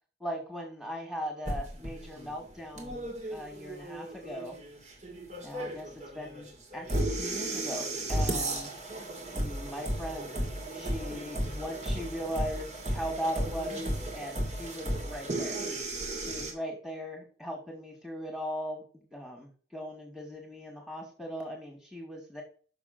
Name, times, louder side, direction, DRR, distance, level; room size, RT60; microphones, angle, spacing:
voice 1, 0.2-4.6 5.4-8.7 9.3-10.5 10.7-15.6 16.2-22.4, equal, ahead, 0 dB, 2.3 m, -39 dB
sound 1, 1.5-16.5, right 1 dB, 40° right, 2.3 m, -34 dB
6.9 x 6.2 x 6.1 m, 0.39 s
head